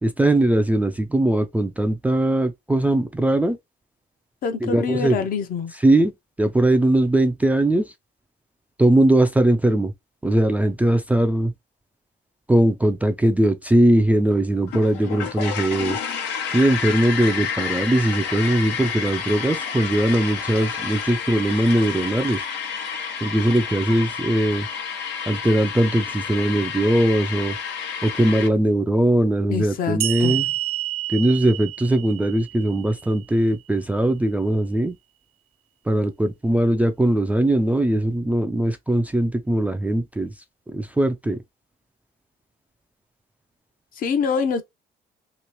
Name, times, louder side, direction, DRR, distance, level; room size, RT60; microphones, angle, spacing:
voice 1, 0.0-3.6 4.6-5.3 5.8-6.1 6.4-7.9 8.8-9.9 10.2-11.5 12.5-16.0 16.5-22.4 23.2-24.7 25.3-27.6 28.0-30.5 31.1-34.9 35.9-40.3 40.7-41.4, right 1 dB, 10° right, 0.3 m, -20 dB
voice 2, 4.4-5.7 29.5-30.4 44.0-44.6, left 6 dB, 60° left, 0.8 m, -25 dB
sound 1, 14.7-28.5, left 6 dB, 90° left, 1.0 m, -30 dB
sound 2, 30.0-33.4, right 15 dB, 75° right, 0.5 m, -29 dB
3.0 x 2.9 x 2.9 m
cardioid pair, 110°, 17 cm